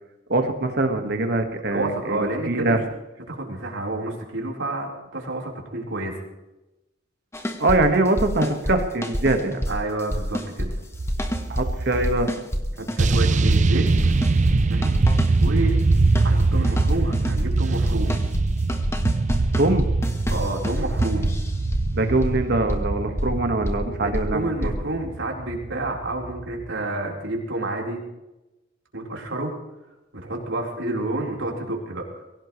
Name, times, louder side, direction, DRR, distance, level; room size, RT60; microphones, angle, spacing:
voice 1, 0.3-2.2 2.5-2.8 7.6-9.6 11.5-12.3 19.6-19.9 21.9-24.7, right 2 dB, 60° right, 5 dB, 1.7 m, -23 dB
voice 2, 1.7-2.8 3.3-6.2 9.7-10.7 13.0-14.2 14.7-14.9 15.4-15.8 16.2-18.2 20.3-21.3 24.0-28.0 28.9-29.5 30.1-32.2, right 2 dB, 80° right, -1 dB, 4.3 m, -29 dB
sound 1, 7.3-7.8 8.1-8.8 9.0-9.7 10.0-10.7 11.1-11.7 12.0-12.6 12.9-14.6 14.8-15.5 15.8-17.5 17.9-18.4 18.7-21.8 22.2-22.3 22.7-22.8 23.2-23.3 23.7-23.8 24.1-24.2 24.6-24.7, equal, 15° left, 1.5 m, -27 dB
sound 2, 10.9-12.1 13.0-26.7, right 3 dB, 40° right, 0.5 m, -23 dB
23.0 x 17.0 x 3.3 m, 0.99 s
head